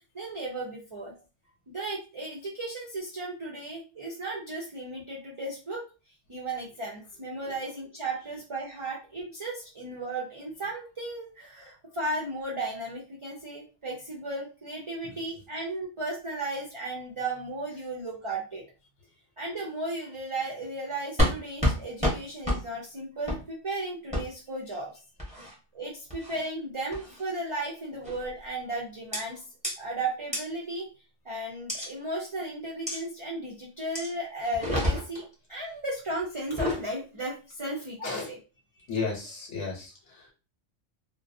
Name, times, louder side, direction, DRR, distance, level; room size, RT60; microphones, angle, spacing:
voice 1, 0.1-1.1 1.7-5.9 6.3-18.6 19.4-24.9 25.7-29.4 29.8-30.9 31.2-35.2 35.5-38.3, right 2 dB, 45° right, -4 dB, 0.4 m, -35 dB
sound 1, 21.2-21.3 21.6-21.8 22.0-22.2 22.4-22.6 23.3-23.4 24.1-24.2 25.2-25.5 26.1-26.4 26.9-27.2 28.0-28.3 29.1-29.2 29.6-29.7 30.3-30.4 31.7-31.9 32.9-33.0 33.9-34.1 34.5-35.2 36.4-36.8, left 1 dB, 5° right, 0.8 m, -28 dB
voice 2, 38.0-38.3 38.9-40.3, left 4 dB, 70° left, -2 dB, 1.1 m, -34 dB
2.4 x 2.2 x 2.6 m, 0.33 s
omnidirectional pair, 1.3 m